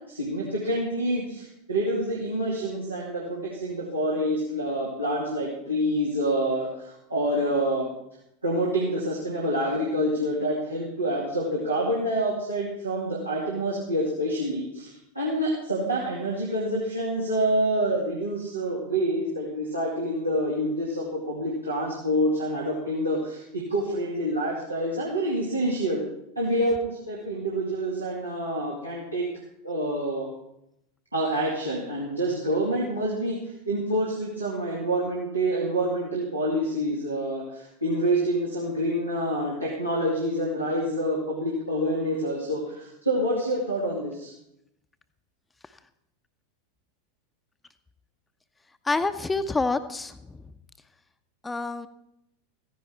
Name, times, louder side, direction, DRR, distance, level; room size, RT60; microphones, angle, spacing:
voice 1, 0.1-7.9 8.4-26.0 26.4-29.3 29.6-30.3 31.1-33.4 33.7-44.3, right 1 dB, 90° right, -6 dB, 2.3 m, -27 dB
voice 2, 48.8-50.4 51.4-51.9, left 3 dB, 10° left, 10 dB, 0.8 m, -27 dB
14.5 x 10.0 x 4.6 m, 0.81 s
figure-of-eight pair, 85°, 0 cm